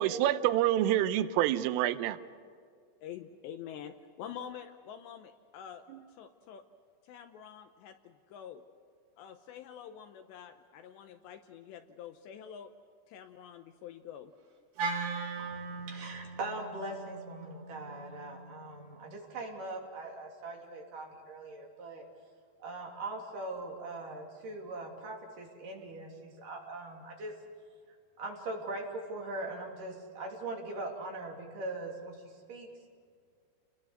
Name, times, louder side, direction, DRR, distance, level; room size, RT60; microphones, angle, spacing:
voice 1, 0.0-2.2, right 13 dB, 90° right, 3.4 m, -27 dB
voice 2, 3.0-5.9 6.2-6.6 7.0-8.6 9.2-12.7 13.1-14.3, left 9 dB, 75° left, 2.7 m, -47 dB
Wind instrument woodwind instrument, 14.8-19.0, right 4 dB, 70° right, 6.5 m, -39 dB
voice 3, 15.4-22.0 22.6-27.3 28.2-32.7, right 2 dB, 45° right, 4.1 m, -41 dB
29.5 x 21.0 x 6.6 m
omnidirectional pair, 5.7 m